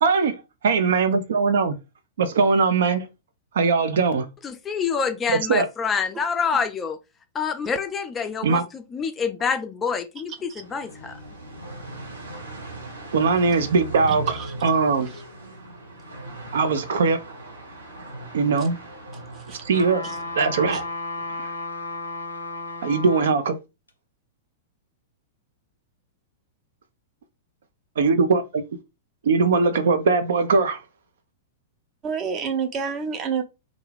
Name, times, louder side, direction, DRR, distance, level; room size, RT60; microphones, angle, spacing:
voice 1, 0.0-1.7 2.2-3.1 3.5-4.3 5.3-5.7 8.4-8.6 13.1-15.1 16.5-17.2 18.3-18.8 19.6-20.0 20.4-20.9 21.4-21.5 22.8-23.6 28.0-28.6 29.2-30.8, right 4 dB, 60° right, 0.4 m, -21 dB
voice 2, 4.4-7.0 7.3-11.2, left 6 dB, 20° left, 0.3 m, -27 dB
sound 1, 10.6-20.8, right 2 dB, 85° right, 1.0 m, -39 dB
voice 3, 14.1-14.5 19.5-19.6 20.0-20.2 20.7-20.8 32.0-33.4, right 6 dB, 30° right, 0.7 m, -28 dB
sound 2, 19.7-23.4 23.9-24.0, left 2 dB, 85° left, 0.6 m, -33 dB
2.5 x 2.3 x 3.1 m
figure-of-eight pair, 100°, 0 cm